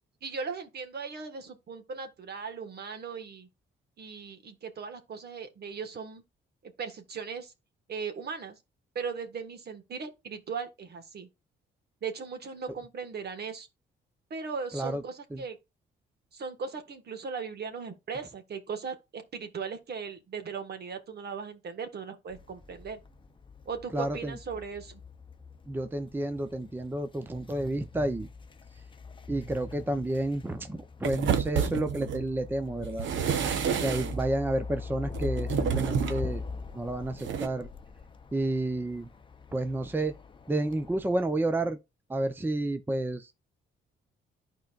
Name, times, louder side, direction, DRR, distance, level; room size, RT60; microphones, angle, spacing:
voice 1, 0.2-3.5 4.0-6.2 6.6-7.5 7.9-8.6 9.0-11.3 12.0-13.7 14.3-15.6 16.3-23.0 23.7-25.0, right 5 dB, 55° right, 1.6 m, -38 dB
sound 1, 22.3-41.0, left 4 dB, 25° left, 0.8 m, -42 dB
voice 2, 23.9-24.4 25.7-28.3 29.3-33.1 33.8-36.4 36.7-37.7 38.3-39.1 39.5-40.1 40.5-41.8 42.1-43.3, right 1 dB, 10° right, 0.7 m, -30 dB
sound 2, 31.0-32.2 32.8-34.3 35.1-36.3 37.2-37.5, right 8 dB, 70° right, 1.0 m, -29 dB
11.5 x 4.6 x 2.5 m
cardioid pair, 90°, 20 cm